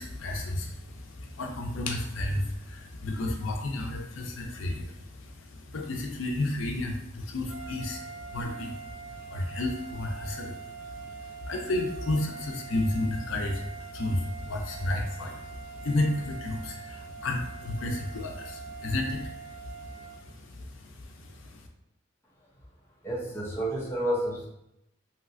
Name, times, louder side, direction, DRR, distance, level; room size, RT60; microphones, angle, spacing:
voice 1, 0.0-21.6, left 1 dB, 75° left, 2 dB, 0.5 m, -32 dB
sound 1, 7.5-20.3, right 6 dB, 75° right, 1.4 m, -44 dB
voice 2, 23.0-24.5, right 1 dB, 10° left, -4 dB, 0.5 m, -30 dB
3.2 x 2.7 x 2.5 m, 0.85 s
head